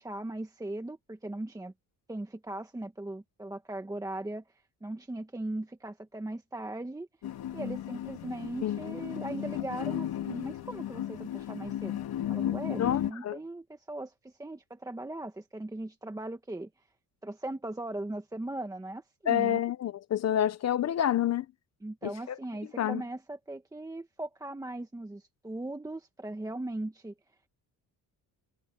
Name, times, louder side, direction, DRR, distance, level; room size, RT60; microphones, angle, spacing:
voice 1, 0.0-1.7 2.1-4.4 4.8-7.1 7.5-12.0 12.3-16.7 17.2-19.6 21.8-27.1, right 1 dB, 10° right, 1.3 m, -39 dB
sound 1, 7.2-13.1, left 11 dB, 80° left, 3.1 m, -35 dB
voice 2, 8.6-9.0 12.8-13.4 19.3-21.5 22.0-22.4 22.8-23.0, left 11 dB, 45° left, 0.6 m, -28 dB
cardioid pair, 155°, 37 cm